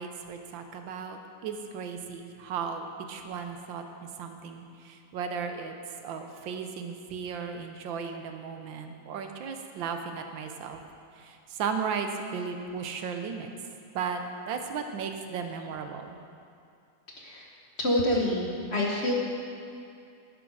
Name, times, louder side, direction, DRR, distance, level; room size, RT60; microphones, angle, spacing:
voice 1, 0.0-3.8 4.2-5.7 6.0-10.8 11.1-13.5 13.9-14.2 14.5-16.2, right 6 dB, 80° right, 5 dB, 1.6 m, -35 dB
voice 2, 17.2-17.5 17.8-19.1, left 1 dB, 35° left, -2 dB, 1.4 m, -27 dB
11.5 x 10.0 x 4.9 m, 2.5 s
omnidirectional pair, 2.1 m